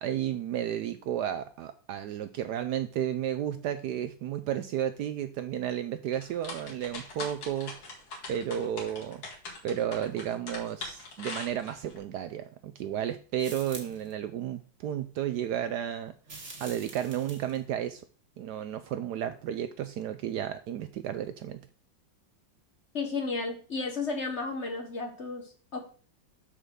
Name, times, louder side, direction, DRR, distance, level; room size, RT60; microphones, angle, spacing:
voice 1, 0.0-7.7 8.3-9.2 9.6-16.1 16.6-18.0 18.4-21.6, right 10 dB, 70° right, 10 dB, 1.0 m, -32 dB
sound 1, 6.1-12.0, left 3 dB, 80° left, 2.7 m, -41 dB
sound 2, 13.4-14.1 16.2-17.6, right 3 dB, 40° right, 1.9 m, -45 dB
voice 2, 22.9-25.8, left 4 dB, 40° left, 4 dB, 1.4 m, -33 dB
5.7 x 5.1 x 6.2 m, 0.41 s
omnidirectional pair, 2.1 m